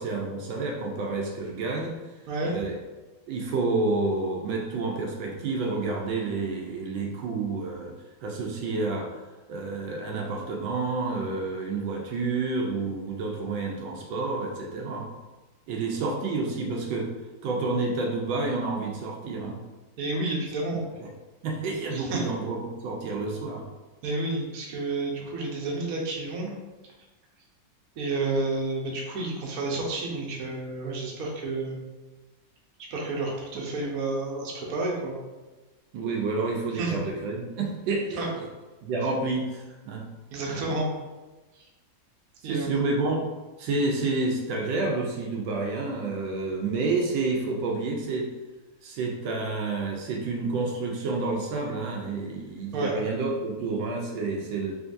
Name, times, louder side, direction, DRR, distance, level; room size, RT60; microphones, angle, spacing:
voice 1, 0.0-1.9 2.4-2.8 3.3-7.9 8.2-9.1 9.5-15.1 15.7-17.1 17.4-19.6 21.0-21.1 21.4-23.6 33.5-33.6 35.9-38.5 38.8-40.0 40.5-40.6 42.4-43.2 43.6-48.3 48.8-54.7, right 3 dB, 80° right, 0 dB, 1.3 m, -29 dB
voice 2, 20.0-20.8 21.9-22.3 24.0-26.5 28.0-31.8 32.9-35.1 36.7-37.0 38.2-38.3 40.3-40.9 42.4-42.8 52.7-52.9, right 2 dB, 60° right, -2 dB, 1.1 m, -30 dB
3.7 x 3.2 x 2.5 m, 1.2 s
omnidirectional pair, 2.1 m